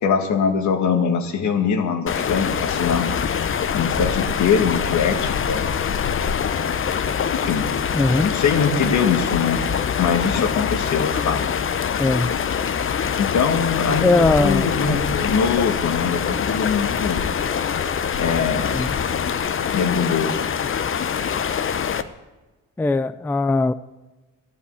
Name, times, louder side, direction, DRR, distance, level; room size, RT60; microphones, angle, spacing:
voice 1, 0.0-3.1 3.7-5.7 7.3-7.7 8.0-9.6 10.0-11.4 13.2-17.2 18.2-18.8 19.7-20.4, left 6 dB, 70° left, 1.7 m, -22 dB
sound 1, 2.1-22.0, left 7 dB, 45° left, 0.8 m, -24 dB
voice 2, 7.9-8.3 12.0-12.3 14.0-15.1 18.7-18.9 22.8-23.7, left 2 dB, 5° left, 0.4 m, -20 dB
12.5 x 8.4 x 8.1 m
cardioid pair, 90°, 30 cm